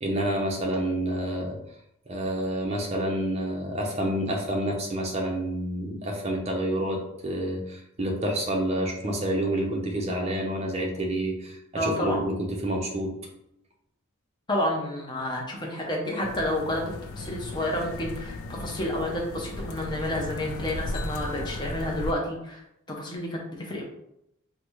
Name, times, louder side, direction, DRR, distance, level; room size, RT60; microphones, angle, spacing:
voice 1, 0.0-1.6 2.1-13.1, right 1 dB, 30° right, 0 dB, 0.6 m, -28 dB
voice 2, 11.7-12.2 14.5-16.8 17.1-22.6 22.9-23.8, left 1 dB, 20° left, -1 dB, 0.7 m, -30 dB
sound 1, 16.2-22.1, left 2 dB, 70° left, 0.3 m, -36 dB
3.8 x 2.2 x 3.0 m, 0.80 s
head